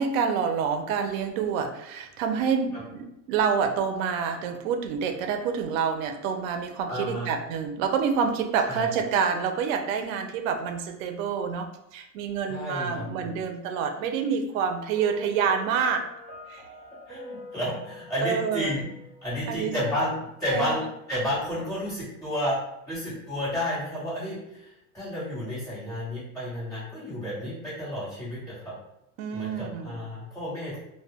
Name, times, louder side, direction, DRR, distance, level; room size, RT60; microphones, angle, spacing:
voice 1, 0.0-16.1 16.5-16.6 18.2-18.7 19.5-19.8 20.5-20.7 29.2-30.0, right 6 dB, 85° right, 6 dB, 0.5 m, -27 dB
voice 2, 6.9-7.3 8.6-8.9 12.5-13.3 17.1-18.9 19.2-22.6 22.9-28.7 29.3-30.8, left 1 dB, 10° left, -11 dB, 1.0 m, -31 dB
Piano, 14.9-19.9, left 2 dB, 40° right, 0.8 m, -45 dB
2.1 x 2.0 x 3.4 m, 0.84 s
cardioid pair, 175°, 39 cm